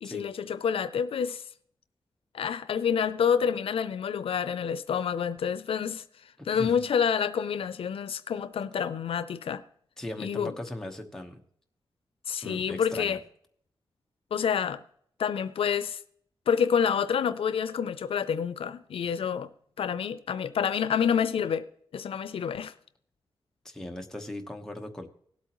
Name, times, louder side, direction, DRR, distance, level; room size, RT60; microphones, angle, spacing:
voice 1, 0.0-1.4 2.3-6.0 6.5-9.6 10.2-10.5 12.3-13.2 14.3-14.8 15.2-16.0 16.5-19.5 19.8-21.7 21.9-22.7, left 7 dB, 85° left, 0.5 m, -28 dB
voice 2, 6.4-6.8 10.0-11.4 12.4-13.2 23.6-25.1, left 1 dB, 5° left, 1.1 m, -39 dB
18.5 x 8.2 x 3.0 m
wide cardioid pair, 145°, 9 cm